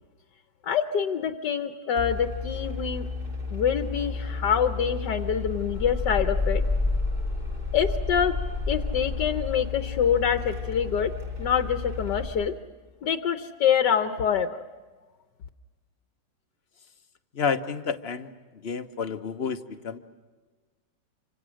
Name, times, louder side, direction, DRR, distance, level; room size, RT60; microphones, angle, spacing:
voice 1, 0.6-3.1 3.5-6.6 7.7-8.3 8.7-11.1 11.4-12.5 13.0-14.6, left 8 dB, 75° left, 8 dB, 1.6 m, -25 dB
sound 1, 2.0-12.3, left 3 dB, 30° right, 4.1 m, -30 dB
voice 2, 17.3-18.3 18.6-20.0, left 6 dB, 40° left, 9 dB, 1.1 m, -30 dB
27.5 x 25.5 x 6.4 m, 1.4 s
omnidirectional pair, 1.9 m